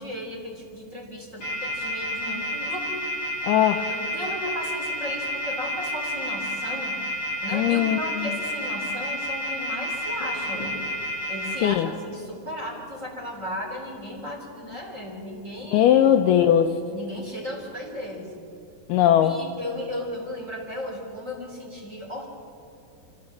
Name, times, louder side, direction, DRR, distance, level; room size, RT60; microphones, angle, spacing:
voice 1, 0.0-2.9 3.9-7.0 7.4-10.8 11.3-16.2 16.9-18.3 19.2-22.3, left 1 dB, 20° right, -2 dB, 2.8 m, -35 dB
sound 1, 1.4-11.5, left 1 dB, 40° left, 9.0 m, -30 dB
voice 2, 3.4-3.9 7.5-8.3 11.6-11.9 15.7-16.8 18.9-19.4, left 10 dB, 80° left, 6 dB, 2.4 m, -19 dB
26.0 x 16.5 x 7.4 m, 2.8 s
omnidirectional pair, 5.2 m